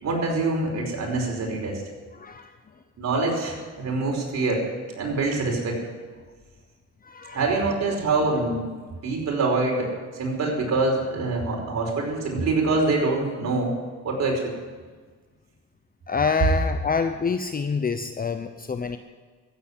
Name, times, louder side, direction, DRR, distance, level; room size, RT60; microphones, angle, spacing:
voice 1, 0.0-1.8 3.0-4.6 5.0-5.8 7.3-8.6 9.0-13.7 14.0-14.4, right 3 dB, 60° right, -1 dB, 5.0 m, -25 dB
voice 2, 2.1-2.5 7.0-7.6 16.1-19.0, left 5 dB, 30° left, 8 dB, 0.8 m, -27 dB
15.0 x 8.3 x 9.8 m, 1.5 s
cardioid pair, 90°, 30 cm